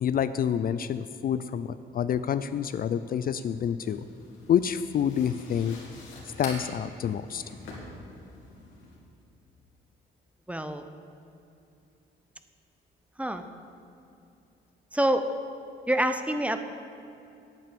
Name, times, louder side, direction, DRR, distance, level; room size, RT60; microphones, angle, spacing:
voice 1, 0.0-4.0 4.5-5.8 6.4-7.4, left 8 dB, 50° left, 13 dB, 0.4 m, -28 dB
sound 1, 3.8-9.0, left 3 dB, 75° left, 2.5 m, -45 dB
voice 2, 10.5-10.8 13.2-13.5 14.9-15.3 15.9-16.6, right 1 dB, 5° right, 8 dB, 0.7 m, -26 dB
9.1 x 8.8 x 6.8 m, 2.7 s
cardioid pair, 90°, 20 cm